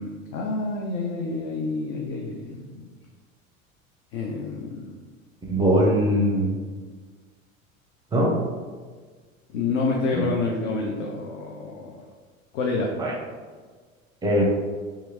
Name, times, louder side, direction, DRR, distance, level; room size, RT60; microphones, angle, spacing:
voice 1, 0.0-2.8 4.1-5.0 9.5-12.0 12.5-12.9, left 3 dB, 60° left, -1 dB, 0.5 m, -28 dB
voice 2, 5.5-6.6 8.1-8.4 10.1-10.3 13.0-13.1 14.2-14.4, equal, 10° right, -2 dB, 0.5 m, -21 dB
2.8 x 2.4 x 2.7 m, 1.5 s
figure-of-eight pair, 75°, 41 cm